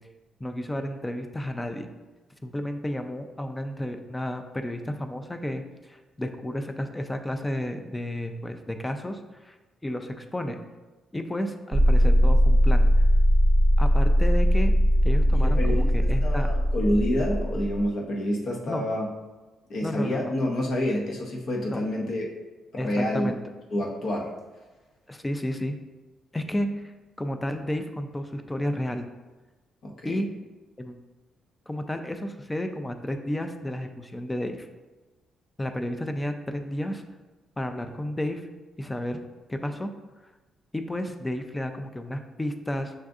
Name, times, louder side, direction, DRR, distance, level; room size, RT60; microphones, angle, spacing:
voice 1, 0.4-1.9 2.4-9.6 9.8-10.6 11.1-13.0 13.8-14.7 15.0-16.5 18.7-18.8 19.8-20.3 21.7-21.8 22.8-23.4 25.1-25.8 26.3-26.9 27.2-29.1 30.0-30.3 30.8-30.9 31.7-34.7 35.6-37.0 37.6-38.5 38.8-39.2 39.5-39.9 40.7-42.9, left 1 dB, 15° left, 7 dB, 0.4 m, -32 dB
sound 1, 11.7-17.9, equal, 40° right, 0.7 m, -20 dB
voice 2, 15.3-19.1 19.7-22.3 22.8-23.3 23.7-24.3 29.8-30.1, left 1 dB, 60° left, -1 dB, 0.8 m, -28 dB
6.3 x 2.5 x 2.4 m, 1.2 s
cardioid pair, 90°, 0 cm